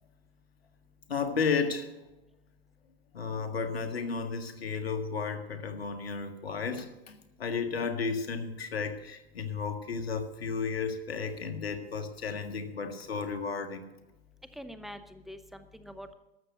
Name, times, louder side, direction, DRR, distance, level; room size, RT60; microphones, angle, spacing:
voice 1, 1.1-1.9 3.1-13.9, left 5 dB, 85° left, 7 dB, 1.7 m, -33 dB
voice 2, 14.6-16.1, equal, ahead, 10 dB, 0.4 m, -45 dB
13.0 x 6.8 x 8.1 m, 1.0 s
hypercardioid pair, 130°, 30 cm